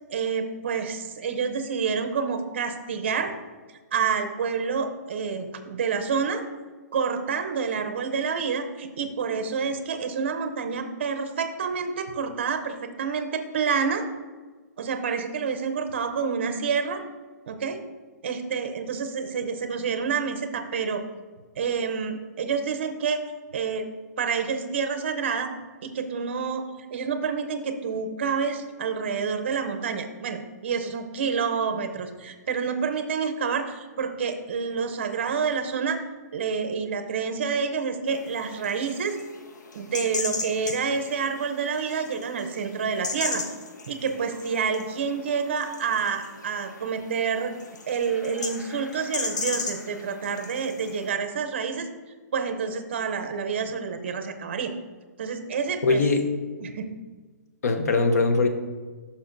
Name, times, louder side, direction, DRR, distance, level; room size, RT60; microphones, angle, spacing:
voice 1, 0.1-3.3 3.9-6.4 6.9-14.0 14.8-17.0 17.5-17.8 18.2-21.0 21.6-23.2 23.5-23.9 24.2-25.5 25.8-36.0 36.3-39.2 39.7-43.4 43.9-47.5 47.9-51.9 52.3-54.7 55.2-56.0 56.6-56.9, right 6 dB, 40° right, 7 dB, 0.6 m, -28 dB
sound 1, 38.1-51.1, left 4 dB, 90° left, 1.0 m, -37 dB
voice 2, 55.8-56.2 57.6-58.5, left 3 dB, 60° left, 7 dB, 0.8 m, -21 dB
11.5 x 5.7 x 2.6 m, 1.4 s
hypercardioid pair, 180°, 9 cm